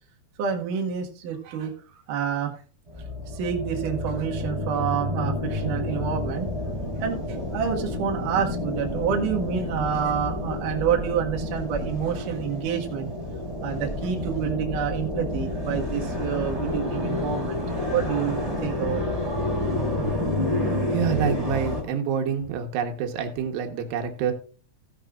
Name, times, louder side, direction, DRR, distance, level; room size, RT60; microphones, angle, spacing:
voice 1, 0.4-1.7 2.1-2.5 3.3-6.5 7.0-13.1 13.6-17.6 17.9-19.0, right 7 dB, 60° right, 1 dB, 2.9 m, -28 dB
sound 1, 2.9-21.8, left 1 dB, 10° right, 3.0 m, -29 dB
voice 2, 20.9-24.3, right 7 dB, 85° right, 5 dB, 3.3 m, -27 dB
15.5 x 11.0 x 2.5 m, 0.38 s
omnidirectional pair, 4.7 m